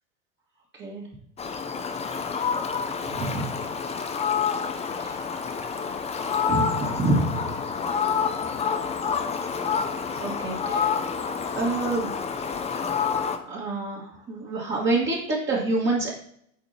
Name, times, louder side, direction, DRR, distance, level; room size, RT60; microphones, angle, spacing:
Fowl, 1.4-13.4, left 6 dB, 15° left, 0.6 m, -28 dB
voice 1, 3.0-3.5 4.9-5.3 6.5-7.5 10.2-10.9 11.5-12.1 13.4-16.1, right 2 dB, 30° right, -5 dB, 2.0 m, -27 dB
8.6 x 5.4 x 2.9 m, 0.68 s
hypercardioid pair, 105°, 41 cm